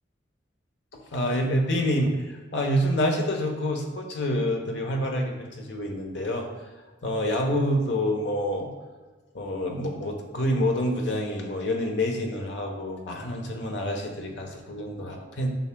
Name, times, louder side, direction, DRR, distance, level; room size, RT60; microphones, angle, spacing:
voice 1, 0.9-6.5 7.0-8.7 9.3-15.5, equal, 75° left, 2 dB, 1.0 m, -27 dB
7.9 x 5.7 x 2.2 m, 1.4 s
head